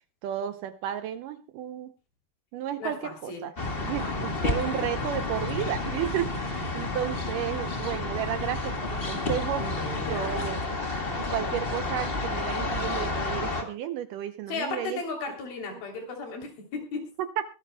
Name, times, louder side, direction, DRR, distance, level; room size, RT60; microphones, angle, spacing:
voice 1, 0.2-1.9 2.5-3.5 3.9-9.7 10.1-10.6 11.2-15.0 17.2-17.5, right 11 dB, 75° right, 10 dB, 2.1 m, -33 dB
voice 2, 2.8-3.4 3.9-4.1 9.6-10.5 14.5-17.0, left 4 dB, 75° left, 2 dB, 5.0 m, -35 dB
sound 1, 3.6-13.6, left 2 dB, 40° left, 0.8 m, -30 dB
24.0 x 13.0 x 2.2 m, 0.29 s
omnidirectional pair, 4.3 m